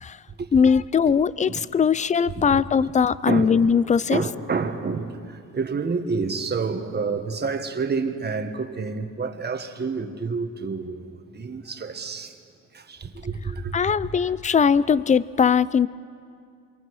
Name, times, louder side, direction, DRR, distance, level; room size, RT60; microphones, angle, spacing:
voice 1, 0.5-4.2 13.7-15.9, left 6 dB, 25° left, 0.5 m, -20 dB
voice 2, 2.4-2.9 3.2-3.8 4.1-12.4 12.7-14.6, right 4 dB, 35° right, 1.6 m, -29 dB
27.0 x 23.5 x 4.9 m
cardioid pair, 90°, 30 cm